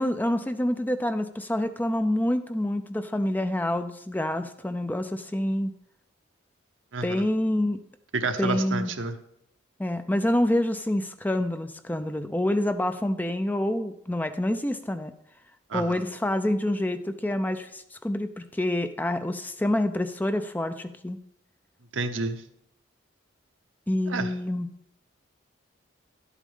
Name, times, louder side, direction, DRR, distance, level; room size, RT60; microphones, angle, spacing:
voice 1, 0.0-5.7 7.0-7.8 8.4-8.9 9.8-15.1 15.7-21.2 23.9-24.7, left 1 dB, 10° left, 9 dB, 0.4 m, -27 dB
voice 2, 6.9-7.2 8.1-9.1 15.7-16.0 21.9-22.4 24.1-24.3, right 3 dB, 80° right, 8 dB, 0.8 m, -29 dB
11.0 x 8.3 x 3.7 m, 0.74 s
head